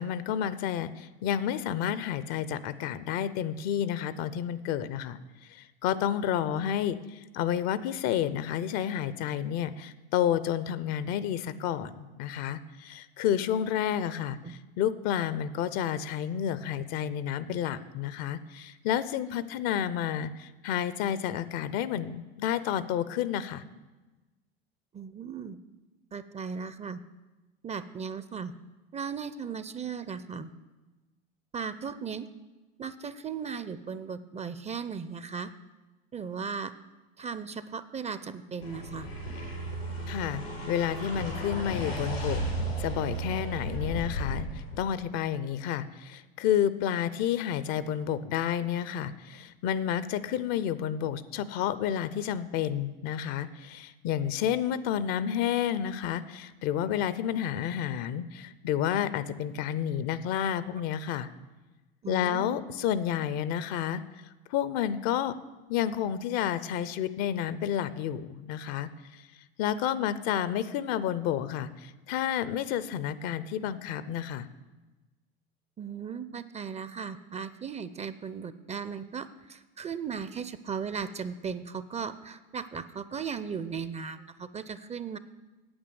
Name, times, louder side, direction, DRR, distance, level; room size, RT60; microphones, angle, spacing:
voice 1, 0.0-5.2 5.5-23.6 40.1-40.4 40.7-42.4 42.8-61.3 62.1-64.0 64.5-65.3 65.7-69.2 69.6-74.5, left 10 dB, 60° left, 15 dB, 0.7 m, -30 dB
voice 2, 24.9-25.6 26.1-27.0 27.6-28.5 28.9-30.5 31.5-32.3 32.8-35.5 36.1-36.7 37.2-39.1 62.0-62.6 75.8-85.2, right 6 dB, 20° right, 13 dB, 0.6 m, -37 dB
sound 1, 38.6-44.9, right 1 dB, 90° left, 4.1 m, -34 dB
8.9 x 8.5 x 7.0 m, 1.2 s
hypercardioid pair, 85°, 30 cm